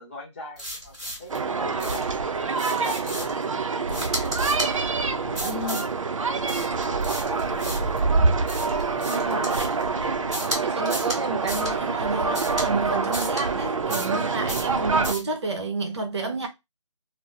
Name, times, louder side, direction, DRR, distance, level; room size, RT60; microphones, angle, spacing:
voice 1, 0.0-2.1 2.7-4.4 5.1-8.0 8.9-10.0, left 1 dB, 25° left, 0.7 m, -40 dB
sound 1, 0.6-1.4 1.8-2.1 2.6-3.4 3.9-4.7 5.3-5.9 6.5-8.0 8.5-9.8 10.3-10.6 10.9-11.2 11.5-11.7 12.3-12.7 13.1-13.4 13.9-14.2 14.5-14.7 15.0-15.3, equal, ahead, 1.5 m, -34 dB
sound 2, 1.3-15.1, right 4 dB, 85° right, 0.4 m, -26 dB
voice 2, 5.4-5.8 9.1-10.3 10.6-16.5, right 3 dB, 60° right, 0.8 m, -30 dB
2.6 x 2.0 x 2.3 m
figure-of-eight pair, 170°, 16 cm